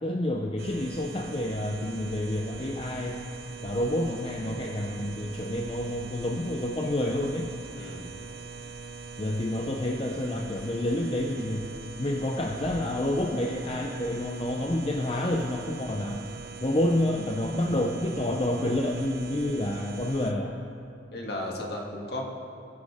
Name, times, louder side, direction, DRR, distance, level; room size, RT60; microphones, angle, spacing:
voice 1, 0.0-3.2 3.6-7.5 9.2-11.7 12.0-16.3 16.6-20.6, left 1 dB, 30° left, 1 dB, 0.6 m, -29 dB
sound 1, 0.6-20.3, right 4 dB, 55° right, 0.9 m, -42 dB
voice 2, 7.8-8.1 17.6-17.7 21.1-22.2, left 1 dB, 55° left, -1 dB, 2.0 m, -35 dB
22.0 x 9.4 x 3.6 m, 2.8 s
head